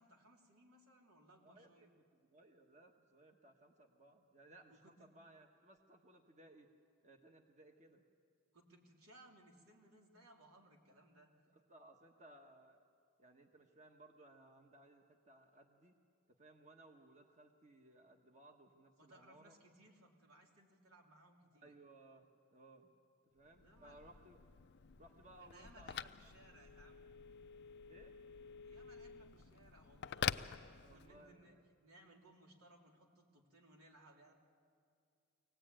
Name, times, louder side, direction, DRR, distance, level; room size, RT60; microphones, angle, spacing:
voice 1, 0.0-1.9 4.7-5.0 8.5-11.5 19.0-21.7 23.6-24.0 25.4-27.1 28.6-34.3, right 1 dB, 85° right, 0 dB, 3.0 m, -64 dB
voice 2, 1.4-1.9 2.2-6.7 7.0-8.0 11.5-12.9 13.2-15.9 16.3-19.5 21.6-22.9 23.3-24.4 25.0-26.1 27.9-28.1 30.7-31.6, right 1 dB, 35° right, 3 dB, 1.3 m, -62 dB
Telephone, 23.5-31.3, left 8 dB, 55° left, 0.5 m, -47 dB
24.0 x 18.0 x 8.9 m, 2.4 s
head